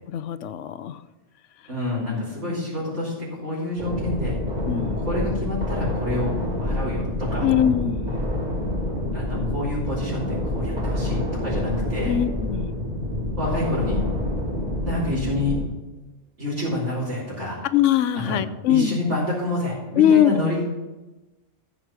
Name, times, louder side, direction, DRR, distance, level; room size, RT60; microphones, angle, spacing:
voice 1, 0.1-1.0 2.4-3.0 4.7-5.1 7.4-8.1 12.1-12.7 17.7-19.2 20.0-20.3, left 10 dB, 85° left, 13 dB, 1.0 m, -22 dB
voice 2, 1.7-4.3 5.1-6.3 6.6-7.5 9.1-12.2 13.3-14.0 14.8-15.6 16.4-17.6 18.1-18.4 18.7-20.6, left 2 dB, 80° right, -10 dB, 4.3 m, -28 dB
sound 1, 3.8-15.7, left 1 dB, 35° right, 3.5 m, -27 dB
14.5 x 6.2 x 6.1 m, 1.1 s
omnidirectional pair, 1.2 m